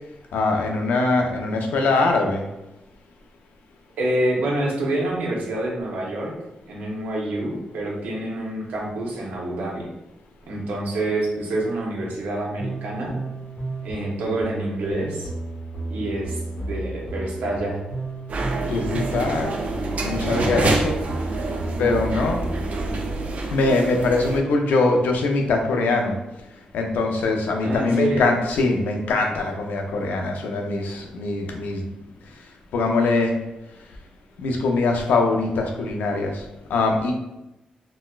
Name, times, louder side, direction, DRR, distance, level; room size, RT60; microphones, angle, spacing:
voice 1, 0.3-2.5 18.7-19.6 20.0-21.0 21.4-22.4 23.5-26.2 26.7-31.9 32.2-32.5 32.7-33.4 34.4-37.1, left 3 dB, 90° left, 2 dB, 0.5 m, -22 dB
voice 2, 4.0-6.3 6.7-9.9 10.5-13.1 13.8-15.3 15.9-16.4 16.7-17.8 27.6-28.3, right 1 dB, 90° right, -2 dB, 0.8 m, -27 dB
sound 1, 12.6-23.2, right 2 dB, 70° left, 1.1 m, -33 dB
sound 2, 18.3-24.4, right 2 dB, 55° right, 0.4 m, -27 dB
3.9 x 2.1 x 2.4 m, 0.95 s
cardioid pair, 85°, 3 cm